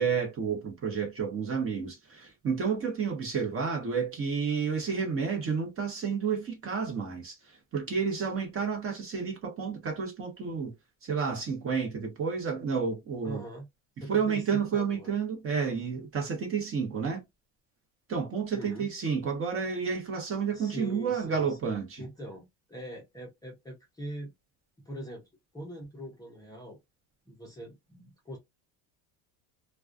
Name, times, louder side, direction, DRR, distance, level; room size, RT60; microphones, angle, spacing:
voice 1, 0.0-10.7 11.0-13.4 14.0-17.2 18.1-22.0, right 6 dB, 30° right, 0.9 m, -30 dB
voice 2, 13.2-13.7 14.0-15.1 18.5-18.9 20.5-24.3 24.8-25.3 25.5-26.8 27.3-28.4, equal, 10° left, 0.5 m, -42 dB
2.3 x 2.2 x 2.3 m
cardioid pair, 140°, 44 cm